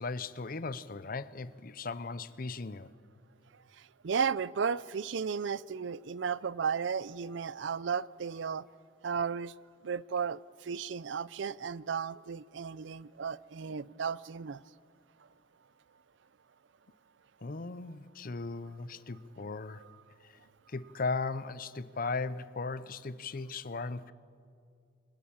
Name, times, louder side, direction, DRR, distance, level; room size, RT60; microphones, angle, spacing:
voice 1, 0.0-2.9 17.4-19.8 20.7-24.1, left 3 dB, 50° left, 0.7 m, -37 dB
voice 2, 4.0-8.7 9.0-9.5 9.8-14.6, right 6 dB, 70° right, 0.5 m, -34 dB
25.0 x 19.0 x 7.2 m
head